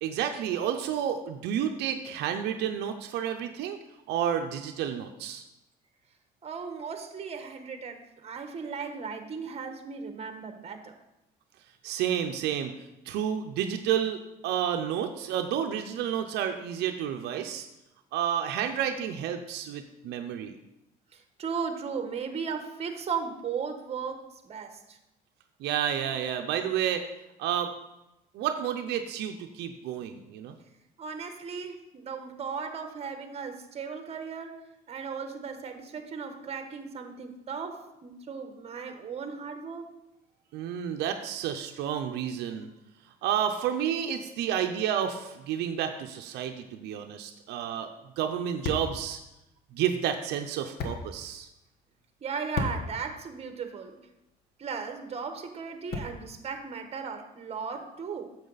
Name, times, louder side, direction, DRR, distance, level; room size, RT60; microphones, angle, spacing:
voice 1, 0.0-3.8 4.1-5.4 11.8-12.7 13.1-14.2 14.4-17.7 18.1-20.6 25.6-27.1 27.4-27.7 28.3-30.5 40.5-42.7 43.2-47.9 48.2-49.2 49.7-51.5, right 9 dB, 85° right, 6 dB, 0.6 m, -30 dB
voice 2, 6.4-10.9 21.1-25.0 31.0-34.6 34.9-39.9 52.2-54.0 54.6-58.4, right 6 dB, 40° right, 7 dB, 1.2 m, -36 dB
sound 1, 47.4-56.4, left 4 dB, 70° left, 1.2 m, -40 dB
9.3 x 7.0 x 4.0 m, 0.91 s
cardioid pair, 110°, 17 cm